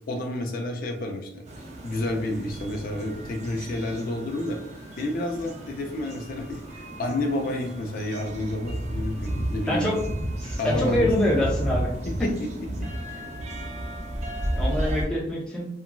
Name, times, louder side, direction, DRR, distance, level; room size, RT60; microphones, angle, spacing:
voice 1, 0.1-1.4 1.8-4.6 5.0-9.9 10.6-11.1 12.2-12.5 12.8-13.3, left 1 dB, 50° left, 2 dB, 0.4 m, -30 dB
sound 1, 1.5-15.0, right 1 dB, 35° right, 0.4 m, -33 dB
voice 2, 9.7-10.0 10.4-11.9 14.5-15.7, equal, 5° left, -6 dB, 0.6 m, -25 dB
2.9 x 2.4 x 2.2 m, 0.75 s
head